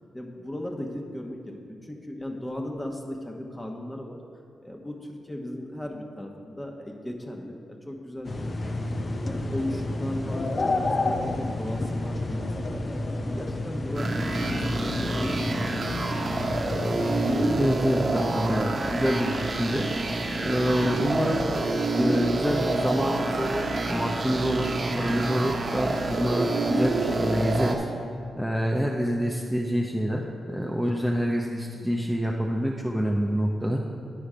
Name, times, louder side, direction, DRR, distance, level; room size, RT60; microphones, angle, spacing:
voice 1, 0.0-4.2 4.6-8.5 8.8-8.9 9.2-12.8 13.3-16.2, left 1 dB, 15° left, 1 dB, 1.1 m, -36 dB
sound 1, 8.2-17.7, left 2 dB, 40° left, 0.6 m, -30 dB
sound 2, 13.9-27.7, right 2 dB, 50° right, 0.9 m, -28 dB
voice 2, 17.6-19.9 20.4-21.5 22.0-27.8 28.4-33.8, equal, 5° right, -1 dB, 0.6 m, -26 dB
10.0 x 5.0 x 4.9 m, 2.4 s
cardioid pair, 75°, 0 cm